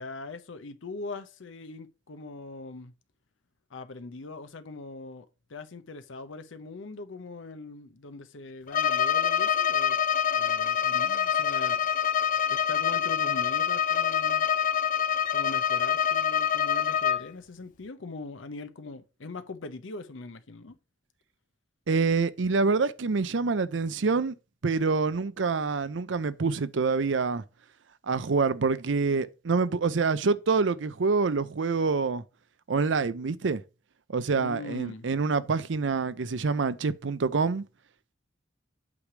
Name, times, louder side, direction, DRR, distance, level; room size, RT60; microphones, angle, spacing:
voice 1, 0.0-2.9 3.7-10.0 10.3-11.8 12.5-14.5 15.3-20.8 34.3-35.1, left 3 dB, 80° left, 0.7 m, -41 dB
Bowed string instrument, 8.7-17.3, left 8 dB, 45° left, 0.4 m, -26 dB
voice 2, 21.9-24.3 24.6-27.4 28.0-32.2 32.7-33.6 34.1-37.6, right 4 dB, 70° right, 0.6 m, -26 dB
8.4 x 3.3 x 6.0 m
head